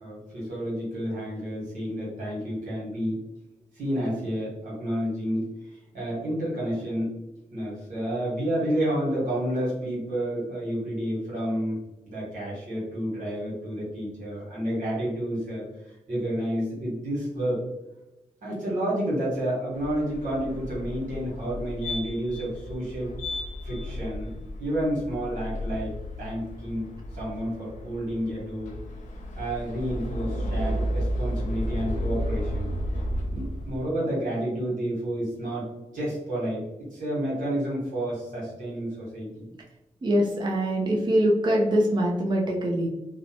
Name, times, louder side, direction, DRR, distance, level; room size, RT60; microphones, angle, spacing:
voice 1, 0.0-3.2 3.7-5.5 5.9-7.1 7.5-11.8 12.1-17.6 18.4-23.2 23.6-24.3 24.6-25.9 26.2-26.9 27.1-28.8 29.4-32.7 33.3-35.7 35.9-36.6 36.9-39.5, right 1 dB, 85° right, -6 dB, 1.3 m, -30 dB
sound 1, 19.7-33.8, equal, 70° left, 0.5 m, -33 dB
voice 2, 40.0-42.9, equal, 35° right, -2 dB, 0.6 m, -23 dB
2.7 x 2.1 x 2.8 m, 0.99 s
cardioid pair, 55°, 13 cm